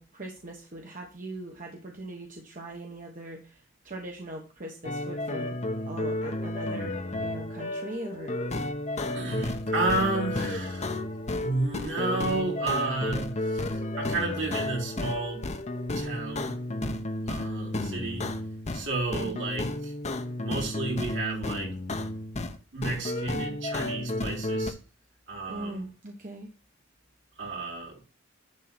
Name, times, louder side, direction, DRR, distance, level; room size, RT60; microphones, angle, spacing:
voice 1, 0.0-5.6 5.9-8.6 19.1-19.4 25.5-26.5, right 1 dB, 45° right, 1 dB, 1.3 m, -40 dB
sound 1, 4.8-18.9 19.1-22.6 22.8-24.7, left 1 dB, 35° left, 0.8 m, -32 dB
voice 2, 9.1-10.9 11.4-15.4 15.9-16.5 17.3-18.3 18.7-19.9 20.4-21.7 22.7-24.7 25.3-25.8 27.4-28.0, right 2 dB, 65° right, -2 dB, 3.7 m, -32 dB
11.0 x 3.7 x 6.1 m, 0.36 s
head